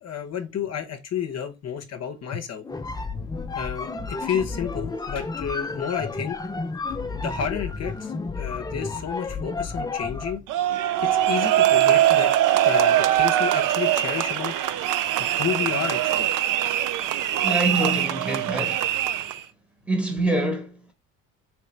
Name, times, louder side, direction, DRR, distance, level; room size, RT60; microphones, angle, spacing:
voice 1, 0.0-2.6 3.6-6.4 7.1-10.4 11.0-12.3 12.6-14.5 15.2-16.3, left 8 dB, 45° left, 0.8 m, -31 dB
sound 1, 2.6-10.4, left 4 dB, 10° left, 0.4 m, -31 dB
sound 2, 10.5-19.4, right 12 dB, 60° right, 0.5 m, -22 dB
voice 2, 17.4-18.9 19.8-20.9, right 2 dB, 5° right, 1.1 m, -26 dB
3.2 x 3.2 x 3.1 m
supercardioid pair, 70°, 36 cm